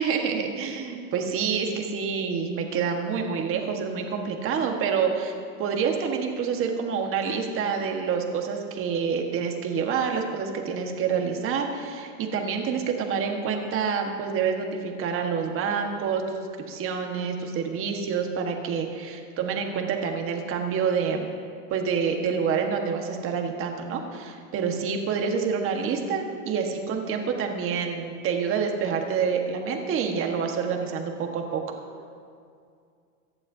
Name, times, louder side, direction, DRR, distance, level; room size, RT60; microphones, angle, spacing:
voice 1, 0.0-5.3 5.6-21.3 21.7-31.6, right 6 dB, 30° right, 3 dB, 1.5 m, -27 dB
24.0 x 10.5 x 2.8 m, 2.3 s
supercardioid pair, 140°, 42 cm